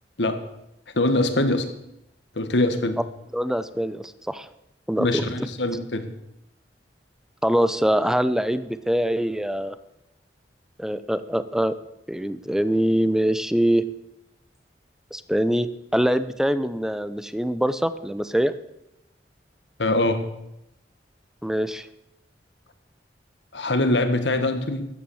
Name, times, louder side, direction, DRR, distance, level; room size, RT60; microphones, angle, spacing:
voice 1, 0.9-1.7 2.3-3.0 5.0-6.1 19.8-20.2 23.5-24.9, left 2 dB, 80° left, 9 dB, 1.6 m, -23 dB
voice 2, 3.3-4.5 4.9-5.2 7.4-9.8 10.8-11.7 12.1-13.8 15.1-18.5 21.4-21.9, equal, 5° right, 13 dB, 0.7 m, -23 dB
14.0 x 10.0 x 7.2 m, 0.85 s
head